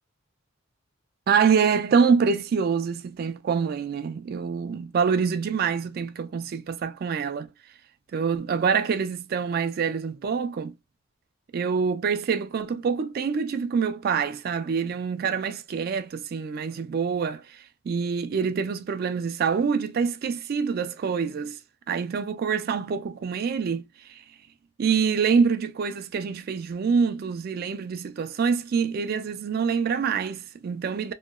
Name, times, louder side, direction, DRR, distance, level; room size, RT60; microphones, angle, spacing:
voice 1, 1.3-7.5 8.1-10.7 11.5-21.6 21.9-24.2 24.8-31.1, right 6 dB, 50° right, 0.3 m, -26 dB
2.8 x 2.2 x 2.2 m
head